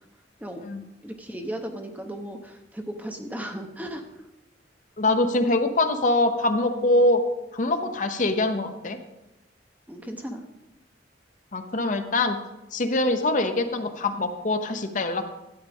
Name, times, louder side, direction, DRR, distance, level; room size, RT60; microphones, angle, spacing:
voice 1, 1.0-4.0 9.9-10.4, right 1 dB, 10° right, 4 dB, 0.9 m, -35 dB
voice 2, 5.0-7.2 7.5-9.0 11.5-12.4 12.7-15.3, left 2 dB, 45° left, 6 dB, 0.8 m, -23 dB
13.0 x 8.8 x 3.5 m, 0.97 s
head